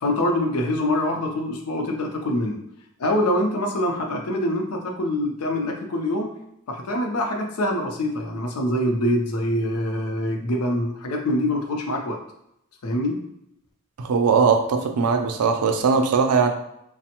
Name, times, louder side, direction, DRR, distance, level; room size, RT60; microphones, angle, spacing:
voice 1, 0.0-2.6 3.0-6.3 6.7-12.2 12.8-13.2, left 1 dB, 85° left, 3 dB, 0.5 m, -24 dB
voice 2, 14.0-16.5, right 5 dB, 85° right, 6 dB, 0.4 m, -20 dB
3.2 x 2.0 x 2.9 m, 0.80 s
head